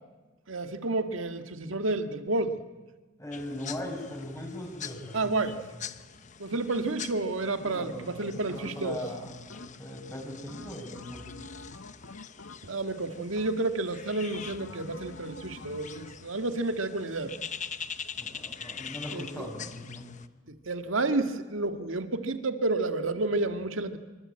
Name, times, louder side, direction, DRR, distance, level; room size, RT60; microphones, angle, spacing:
voice 1, 0.5-2.6 5.1-5.7 6.4-9.0 12.6-17.3 19.1-19.5 20.5-24.0, right 2 dB, 85° right, 8 dB, 1.9 m, -30 dB
voice 2, 3.2-5.7 7.6-11.3 18.2-20.1, left 1 dB, 15° left, 1 dB, 7.3 m, -40 dB
sound 1, 3.3-20.3, left 7 dB, 40° left, 1.0 m, -44 dB
sound 2, 8.5-9.0 9.5-10.0 10.5-12.9 13.4-13.9 14.3-16.3, left 2 dB, 75° left, 1.2 m, -46 dB
26.0 x 25.0 x 8.8 m, 1.2 s
head